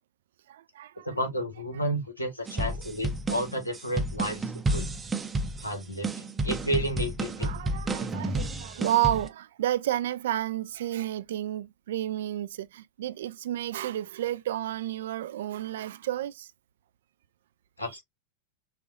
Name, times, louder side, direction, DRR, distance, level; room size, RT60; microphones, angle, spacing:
voice 1, 0.5-1.1 7.4-16.5, right 13 dB, 60° right, 0.3 m, -31 dB
voice 2, 1.0-4.9 5.6-7.5 17.8-18.0, equal, 80° left, 1.3 m, -32 dB
sound 1, 2.5-9.3, right 2 dB, 15° right, 0.6 m, -31 dB
6.2 x 2.4 x 2.4 m
figure-of-eight pair, 90°, 0 cm